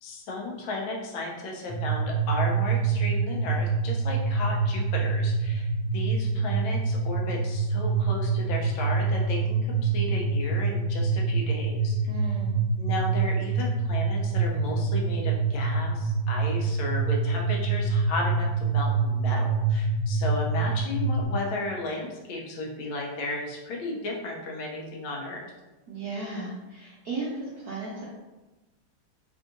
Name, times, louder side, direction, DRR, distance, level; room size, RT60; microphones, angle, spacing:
voice 1, 0.0-12.0 12.8-25.4, left 2 dB, 80° left, -1 dB, 1.4 m, -34 dB
sound 1, 1.7-21.2, right 4 dB, 60° left, 0.7 m, -26 dB
voice 2, 12.1-12.5 25.9-28.0, right 2 dB, 70° right, -6 dB, 0.9 m, -35 dB
3.6 x 2.6 x 2.5 m, 1.1 s
omnidirectional pair, 2.2 m